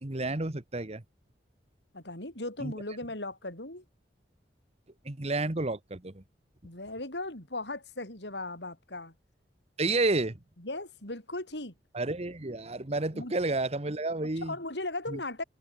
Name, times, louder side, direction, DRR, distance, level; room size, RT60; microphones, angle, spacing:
voice 1, 0.0-1.0 2.6-2.7 5.0-6.2 9.8-10.4 11.9-14.5 15.1-15.2, right 2 dB, 35° right, 1.3 m, -30 dB
voice 2, 1.9-3.8 6.6-9.1 10.6-11.7 13.1-13.3 14.4-15.4, left 2 dB, 70° left, 7.6 m, -37 dB
head